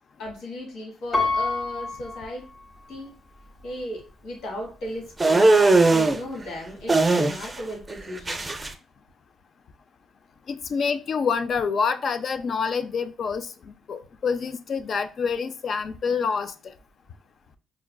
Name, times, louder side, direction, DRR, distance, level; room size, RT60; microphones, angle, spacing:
voice 1, 0.2-2.5 2.9-3.1 3.6-8.4, equal, 80° left, 1.3 m, -36 dB
Piano, 1.1-3.1 3.7-3.8, left 3 dB, 30° left, 0.9 m, -28 dB
sound 1, 5.2-6.2 6.9-7.6 7.9-8.7, right 3 dB, 25° right, 0.5 m, -19 dB
voice 2, 10.5-16.5, left 5 dB, 55° left, 0.4 m, -27 dB
4.9 x 2.3 x 2.2 m
cardioid pair, 90°, 0 cm